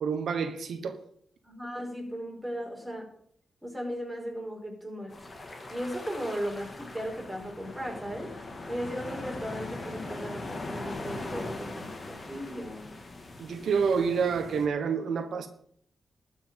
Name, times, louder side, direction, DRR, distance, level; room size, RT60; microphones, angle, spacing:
voice 1, 0.0-1.0 13.4-15.5, right 6 dB, 85° right, 1.1 m, -28 dB
voice 2, 1.4-3.1 3.6-5.3 5.7-12.9, equal, 5° right, 5.0 m, -37 dB
sound 1, 5.1-14.7, left 2 dB, 35° left, 2.4 m, -40 dB
12.5 x 5.8 x 9.0 m
cardioid pair, 90°, 0 cm